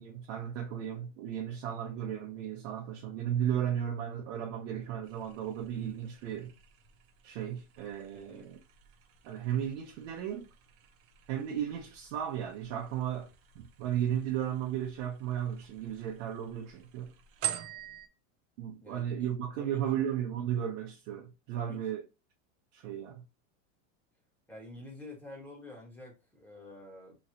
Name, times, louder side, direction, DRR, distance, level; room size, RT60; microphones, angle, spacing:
voice 1, 0.0-6.5 7.2-8.6 9.2-10.5 11.3-13.3 13.5-17.1 18.6-22.0 22.7-23.2, right 10 dB, 70° right, 0.9 m, -35 dB
sound 1, 5.0-18.1, right 11 dB, 40° right, 0.5 m, -46 dB
voice 2, 8.1-8.5 18.8-20.0 21.5-21.8 24.5-27.2, left 1 dB, 5° left, 1.5 m, -49 dB
3.1 x 2.7 x 2.6 m
supercardioid pair, 130°, 37 cm